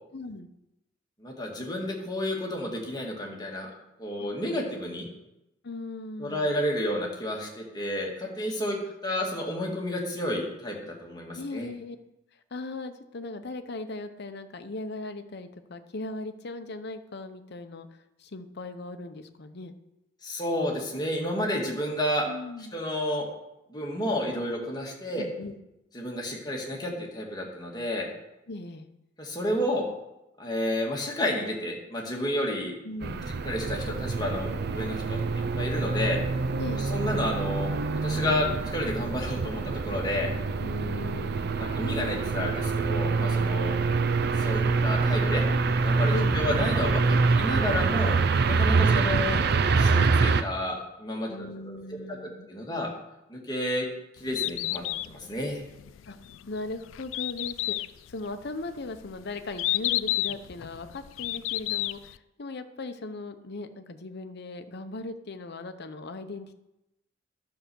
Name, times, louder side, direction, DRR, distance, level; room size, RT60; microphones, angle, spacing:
voice 1, 0.1-0.5 4.2-4.3 5.6-6.5 8.8-8.9 11.3-12.0 12.5-19.7 22.3-22.7 25.1-25.6 28.5-28.9 32.8-33.3 36.6-36.8 40.6-41.6 43.7-44.0 46.1-46.5 48.8-49.1 51.3-52.5 56.1-56.2 56.5-66.6, left 2 dB, 55° left, 9 dB, 0.8 m, -38 dB
voice 2, 1.2-3.7 4.0-5.1 6.2-11.7 20.2-22.3 22.7-23.3 23.7-25.2 25.9-28.1 29.2-29.8 30.4-32.8 33.4-36.2 36.9-37.7 38.0-40.3 41.6-43.8 44.4-45.5 45.8-48.2 48.4-49.4 49.8-51.8 52.1-52.2 52.5-52.9 53.3-53.9 54.2-55.6, left 1 dB, 20° left, -1 dB, 1.9 m, -31 dB
sound 1, 33.0-50.4, right 4 dB, 55° right, 0.5 m, -25 dB
Bird, 54.2-62.2, left 16 dB, 75° left, 0.3 m, -32 dB
11.5 x 5.7 x 6.9 m, 0.92 s
head